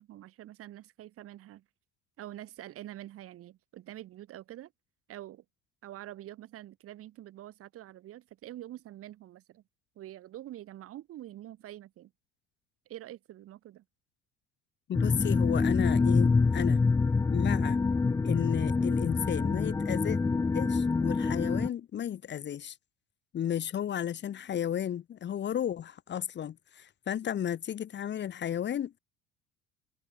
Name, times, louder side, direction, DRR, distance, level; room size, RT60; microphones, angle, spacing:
voice 1, 0.0-1.6 2.2-4.7 5.1-5.4 5.8-9.6 9.9-12.1 12.9-13.8, right 13 dB, 45° right, 4.7 m, -46 dB
voice 2, 14.9-16.8 17.3-17.8 18.2-20.2 20.5-22.8 23.3-29.0, left 10 dB, 35° left, 1.8 m, -33 dB
sound 1, 14.9-21.7, left 4 dB, 10° left, 0.5 m, -26 dB
figure-of-eight pair, 60°, 31 cm